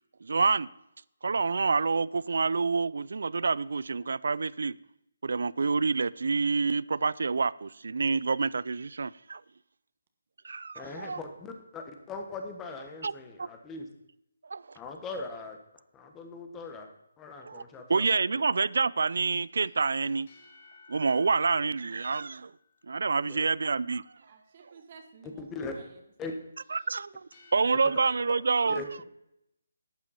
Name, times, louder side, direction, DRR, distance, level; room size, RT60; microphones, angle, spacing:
voice 1, 0.2-0.7 1.2-4.7 5.2-9.4 10.4-11.2 13.0-13.5 14.5-14.6 17.4-17.6 17.9-20.3 20.9-22.5 22.9-24.0 26.7-27.1 27.5-28.8, right 4 dB, 65° right, 21 dB, 0.3 m, -27 dB
voice 2, 10.7-13.9 14.7-15.6 15.9-16.9 17.2-18.4 23.3-23.5 25.4-25.8 26.2-26.3 28.7-28.9, left 3 dB, 15° left, 4 dB, 1.3 m, -40 dB
sound 1, 19.5-23.0 26.6-28.3, left 5 dB, 45° left, 2.8 m, -57 dB
voice 3, 24.2-26.0, right 5 dB, 40° right, 5 dB, 1.3 m, -53 dB
12.0 x 8.6 x 4.2 m, 0.82 s
figure-of-eight pair, 150°, 0 cm